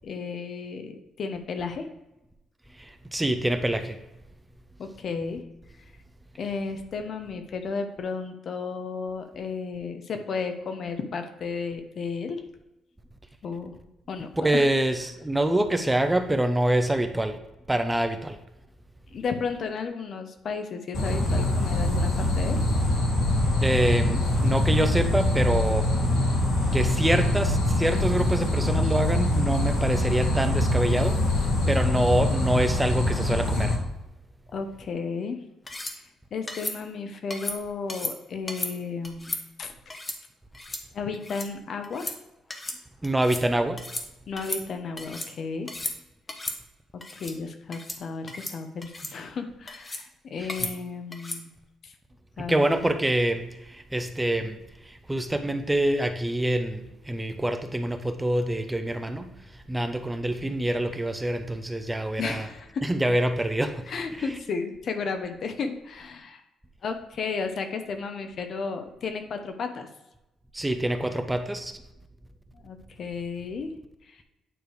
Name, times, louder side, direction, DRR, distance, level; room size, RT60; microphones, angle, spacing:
voice 1, 0.0-1.9 4.8-5.4 6.4-12.4 13.4-13.7 14.1-14.6 19.1-22.6 34.5-35.4 36.3-39.3 39.6-39.7 40.9-42.1 44.3-45.7 47.2-51.5 51.8-51.9 52.4-52.8 62.2-62.9 63.9-66.4 66.8-69.9 72.5-73.7 74.1-74.2, left 5 dB, 55° left, 7 dB, 0.9 m, -33 dB
voice 2, 2.8-4.0 14.4-17.4 17.7-18.4 23.6-25.9 26.7-31.2 31.7-33.8 43.0-43.8 50.4-50.5 52.4-59.3 59.7-62.5 62.8-63.9 70.5-71.8, right 1 dB, 10° right, 7 dB, 0.7 m, -26 dB
sound 1, 20.9-33.8, left 1 dB, 80° left, 2.4 m, -24 dB
sound 2, 35.7-36.0 36.5-36.8 37.3-37.6 37.9-38.1 38.5-38.7 39.0-39.4 39.9-40.2 40.5-40.8 41.1-41.5 41.8-42.2 42.5-42.8 43.0-43.4 43.8-44.1 44.4-45.3 45.7-46.0 46.3-46.6 47.0-47.3 47.7-48.0 48.3-48.5 48.8-49.1 49.7-50.0 50.5-50.7 51.1-51.4, left 2 dB, 25° left, 1.1 m, -34 dB
9.0 x 3.3 x 4.7 m, 0.94 s
cardioid pair, 90°, 0 cm